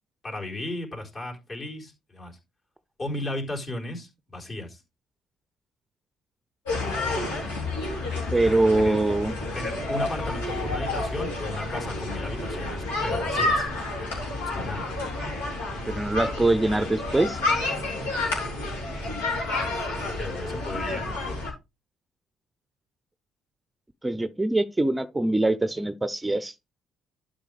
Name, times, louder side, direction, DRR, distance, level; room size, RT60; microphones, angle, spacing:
voice 1, 0.2-2.4 3.0-4.8 8.8-9.0 9.5-13.7 14.5-14.9 19.0-21.1, left 1 dB, 40° left, 3.9 m, -35 dB
sound 1, 6.7-21.5, left 2 dB, 85° left, 3.5 m, -29 dB
voice 2, 8.3-9.3 15.8-17.4 24.0-26.5, right 2 dB, 15° right, 0.6 m, -23 dB
12.0 x 5.2 x 3.4 m
hypercardioid pair, 55°, 0 cm